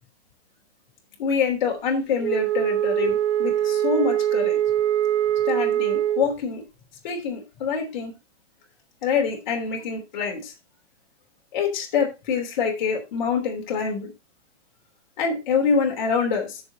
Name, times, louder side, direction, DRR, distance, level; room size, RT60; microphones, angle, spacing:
voice 1, 1.2-4.6 5.5-6.6 7.0-8.1 9.0-10.5 11.5-14.1 15.2-16.6, left 6 dB, 40° left, 3.2 m, -25 dB
Wind instrument woodwind instrument, 2.2-6.4, right 11 dB, 80° right, 0.7 m, -23 dB
13.5 x 7.1 x 2.8 m
hypercardioid pair, 175°, 36 cm